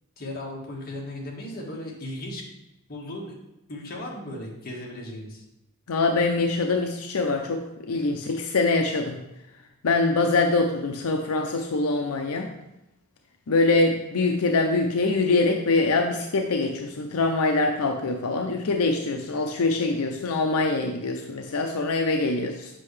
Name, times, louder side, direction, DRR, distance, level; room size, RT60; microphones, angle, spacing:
voice 1, 0.2-2.4 2.9-3.3 3.7-5.4 7.9-8.1, left 1 dB, 45° left, -3 dB, 1.7 m, -36 dB
voice 2, 5.9-9.2 9.8-12.5 13.5-22.7, left 3 dB, 85° left, 3 dB, 0.6 m, -24 dB
7.6 x 5.5 x 3.2 m, 0.92 s
head